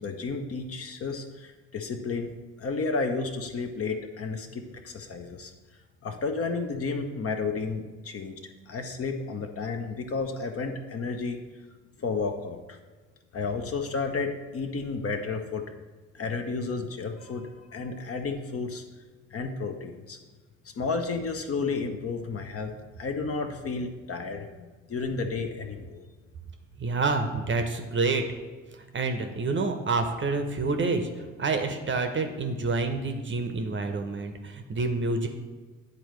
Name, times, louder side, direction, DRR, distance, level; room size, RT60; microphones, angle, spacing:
voice 1, 0.0-2.3 2.6-5.5 6.0-11.4 12.0-12.8 13.3-15.6 16.1-18.8 19.3-20.2 20.8-22.7 23.0-24.5 24.9-26.0, left 4 dB, 35° left, 5 dB, 0.8 m, -32 dB
voice 2, 26.8-28.2 28.7-31.1 31.4-35.3, right 3 dB, 30° right, 6 dB, 0.8 m, -28 dB
9.8 x 4.0 x 3.2 m, 1.3 s
figure-of-eight pair, 50°, 38 cm